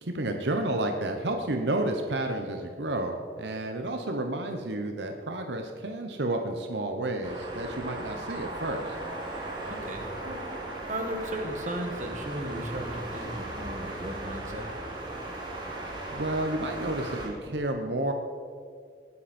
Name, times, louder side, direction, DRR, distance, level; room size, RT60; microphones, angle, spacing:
voice 1, 0.0-9.0 16.1-18.1, right 1 dB, 80° right, 4 dB, 1.1 m, -31 dB
sound 1, 7.2-17.3, right 2 dB, 25° right, 2.7 m, -37 dB
voice 2, 9.7-10.4 10.9-14.7, right 1 dB, 45° right, 3 dB, 1.9 m, -35 dB
19.5 x 9.9 x 4.4 m, 2.2 s
head